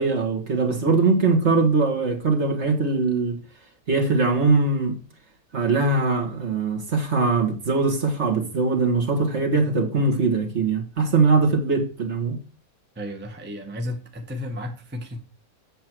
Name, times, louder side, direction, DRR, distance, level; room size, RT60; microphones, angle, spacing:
voice 1, 0.0-3.4 3.9-5.0 5.5-12.4, right 3 dB, 45° right, 1.8 m, -21 dB
voice 2, 12.9-15.2, left 1 dB, 10° right, 1.0 m, -33 dB
7.8 x 7.5 x 4.5 m
omnidirectional pair, 1.7 m